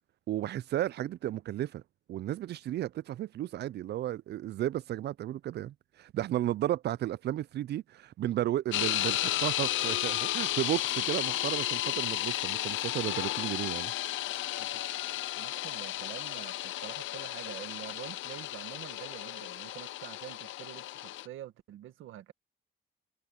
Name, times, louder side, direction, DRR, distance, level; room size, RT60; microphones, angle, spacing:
voice 1, 0.3-1.8 2.1-13.9, right 13 dB, 60° right, 0.4 m, -33 dB
sound 1, 8.7-21.3, left 15 dB, 80° left, 0.6 m, -33 dB
voice 2, 15.4-22.3, right 13 dB, 85° right, 1.7 m, -46 dB
cardioid pair, 90°, 20 cm